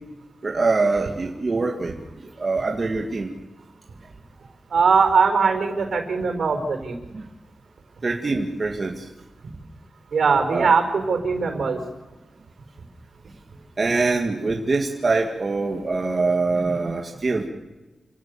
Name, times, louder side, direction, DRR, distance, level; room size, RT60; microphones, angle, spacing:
voice 1, 0.4-3.3 7.1-7.2 8.0-9.0 10.5-10.7 13.8-17.5, right 3 dB, 35° right, 1 dB, 2.1 m, -24 dB
voice 2, 4.7-7.0 9.4-9.5 10.1-11.8, right 5 dB, 75° right, 6 dB, 5.1 m, -20 dB
28.5 x 17.5 x 7.1 m, 1.1 s
wide cardioid pair, 130°, 0 cm